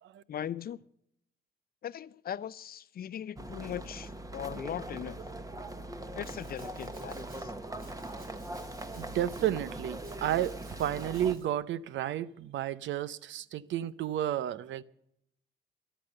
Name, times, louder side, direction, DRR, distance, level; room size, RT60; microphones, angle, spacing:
voice 1, 0.3-0.8 1.8-5.2 6.2-7.5, left 10 dB, 50° left, 0.5 m, -39 dB
sound 1, 3.4-11.3, right 1 dB, 15° right, 1.2 m, -41 dB
Domestic sounds home sounds, 6.2-7.4 7.8-9.5 10.0-11.5, right 2 dB, 45° right, 6.1 m, -58 dB
voice 2, 8.9-14.8, right 11 dB, 70° right, 0.6 m, -32 dB
13.5 x 11.5 x 6.7 m
cardioid pair, 90°, 20 cm